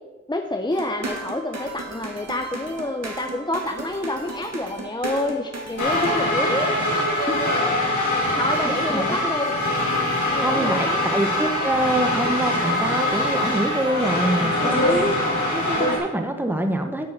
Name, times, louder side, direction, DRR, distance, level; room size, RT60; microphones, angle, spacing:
voice 1, 0.3-6.8 8.4-9.6 10.3-11.0, left 1 dB, 15° left, 5 dB, 0.7 m, -28 dB
sound 1, 0.7-6.2, right 2 dB, 60° right, 1.9 m, -35 dB
sound 2, 5.8-16.0, left 1 dB, 75° left, 2.5 m, -23 dB
voice 2, 8.6-9.0 10.4-17.1, right 1 dB, 5° right, 5 dB, 1.1 m, -25 dB
8.9 x 6.3 x 6.0 m, 1.2 s
cardioid pair, 45°, 29 cm